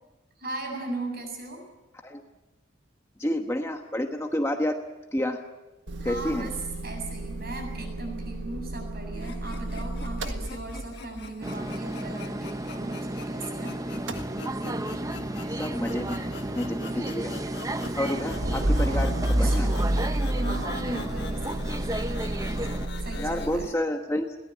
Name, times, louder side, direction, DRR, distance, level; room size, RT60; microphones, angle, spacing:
voice 1, 0.4-1.6 6.0-6.5 6.8-13.7 18.2-20.1 20.4-21.6 21.9-23.7, right 2 dB, 50° right, 3 dB, 7.6 m, -38 dB
voice 2, 3.2-4.8 5.1-5.4 6.0-6.5 15.3-17.5 17.9-19.7 23.2-24.4, left 1 dB, 15° left, 4 dB, 1.2 m, -30 dB
Motor vehicle (road) / Engine starting / Idling, 5.9-13.6 13.8-23.7, right 1 dB, 65° right, 1.6 m, -31 dB
sound 1, 9.1-23.5, left 4 dB, 55° left, 1.6 m, -45 dB
sound 2, 11.4-22.9, right 1 dB, 15° right, 0.8 m, -33 dB
22.5 x 18.5 x 8.4 m, 1.1 s
head